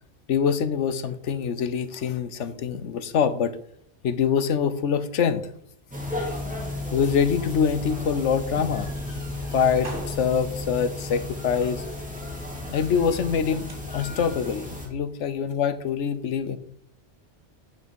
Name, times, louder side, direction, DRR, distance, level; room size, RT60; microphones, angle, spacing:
voice 1, 0.3-3.6 4.0-5.4 6.9-8.9 9.5-11.8 12.7-16.6, left 7 dB, 80° left, 12 dB, 1.1 m, -25 dB
sound 1, 5.9-14.9, left 2 dB, 5° right, 2.5 m, -33 dB
sound 2, 8.5-14.0, right 1 dB, 50° right, 2.0 m, -46 dB
9.7 x 6.2 x 5.3 m, 0.69 s
omnidirectional pair, 1.2 m